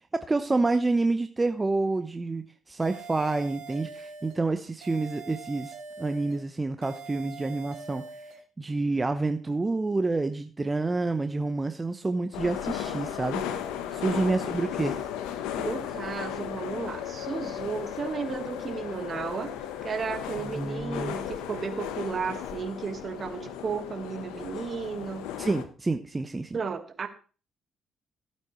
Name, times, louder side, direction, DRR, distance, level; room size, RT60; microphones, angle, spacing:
voice 1, 0.1-8.0 8.6-13.4 13.9-14.9 20.5-21.2 25.4-26.6, right 3 dB, 25° right, 9 dB, 0.9 m, -28 dB
sound 1, 2.8-4.4 4.8-6.4 6.8-8.4, right 4 dB, 75° right, 4.2 m, -43 dB
sound 2, 12.3-25.6, left 10 dB, 80° left, 1.0 m, -35 dB
voice 2, 14.1-14.4 15.6-19.6 19.8-25.3 26.5-27.1, right 5 dB, 50° right, 8 dB, 1.7 m, -34 dB
15.5 x 8.8 x 3.2 m, 0.37 s
hypercardioid pair, 50°, 0 cm